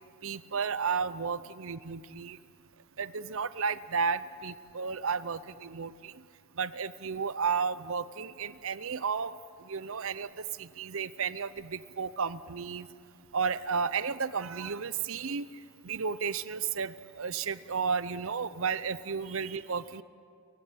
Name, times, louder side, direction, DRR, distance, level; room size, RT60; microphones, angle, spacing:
voice 1, 0.2-2.4 3.0-6.1 6.6-9.3 9.6-12.9 13.3-15.5 15.8-20.0, right 5 dB, 65° right, 16 dB, 0.7 m, -33 dB
28.5 x 16.0 x 8.9 m, 2.2 s
head